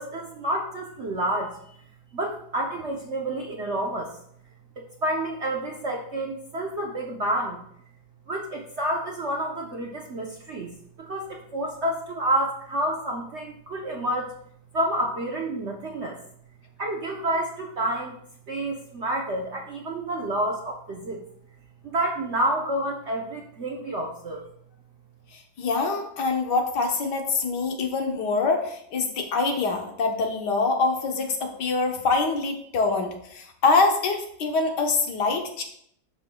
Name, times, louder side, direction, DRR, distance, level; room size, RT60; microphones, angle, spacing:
voice 1, 0.0-1.6 2.1-4.1 4.8-7.6 8.3-10.7 11.0-14.3 14.7-16.2 16.8-18.1 18.5-21.2 21.8-24.4, right 1 dB, 55° right, -1 dB, 0.8 m, -29 dB
voice 2, 25.6-35.6, left 3 dB, 65° left, 3 dB, 1.5 m, -25 dB
11.5 x 5.9 x 2.2 m, 0.67 s
omnidirectional pair, 2.0 m